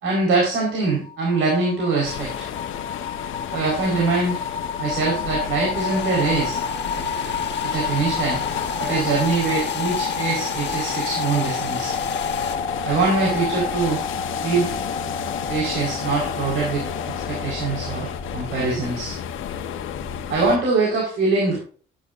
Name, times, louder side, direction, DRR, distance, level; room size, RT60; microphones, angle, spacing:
voice 1, 0.0-2.5 3.5-4.4 4.8-6.6 7.6-8.4 8.8-11.9 12.8-14.0 14.4-14.7 15.5-19.1 20.3-21.6, right 3 dB, 85° right, -3 dB, 4.7 m, -23 dB
sound 1, 0.9-18.8, left 5 dB, 30° left, 2.4 m, -30 dB
sound 2, 2.0-20.6, left 8 dB, 85° left, 1.3 m, -32 dB
sound 3, 5.8-12.6, left 8 dB, 60° left, 1.7 m, -35 dB
11.5 x 11.5 x 2.6 m, 0.41 s
cardioid pair, 90°, 20 cm